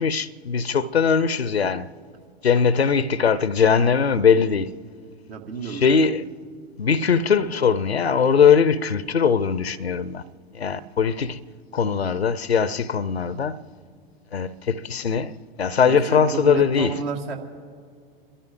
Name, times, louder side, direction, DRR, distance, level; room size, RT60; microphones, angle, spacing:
voice 1, 0.0-1.9 2.4-4.8 5.6-6.2 6.8-10.2 10.5-11.4 11.7-13.6 14.3-16.9, left 6 dB, 90° left, 0.6 m, -20 dB
voice 2, 5.3-6.0 15.8-17.4, right 5 dB, 70° right, 2.1 m, -30 dB
28.5 x 12.5 x 3.6 m
figure-of-eight pair, 95°, 30 cm